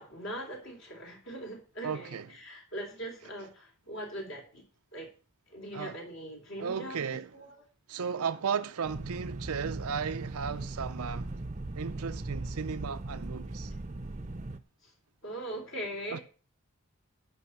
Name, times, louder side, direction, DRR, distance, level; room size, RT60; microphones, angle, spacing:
voice 1, 0.0-4.6 4.9-5.1 5.5-7.5 14.8-14.9 15.2-16.2, right 1 dB, 55° left, 3.5 m, -41 dB
voice 2, 1.8-2.3 5.7-6.0 6.6-7.3 7.9-11.3 11.8-13.7 16.1-16.2, right 6 dB, 85° right, 0.5 m, -35 dB
sound 1, 8.8-14.6, right 2 dB, 30° right, 0.7 m, -39 dB
12.0 x 5.5 x 7.3 m
head